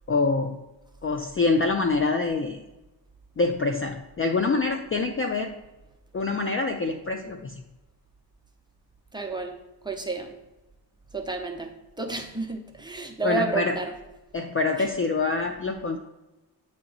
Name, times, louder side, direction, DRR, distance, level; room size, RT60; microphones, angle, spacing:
voice 1, 0.1-0.6 1.0-2.6 3.4-5.6 6.1-7.6 13.2-13.8 14.3-16.0, left 3 dB, 30° left, 4 dB, 0.4 m, -25 dB
voice 2, 9.1-9.6 9.8-10.3 11.1-13.9 14.8-14.9, right 3 dB, 10° right, 3 dB, 0.7 m, -31 dB
8.6 x 2.9 x 3.8 m, 1.0 s
wide cardioid pair, 95°, 45 cm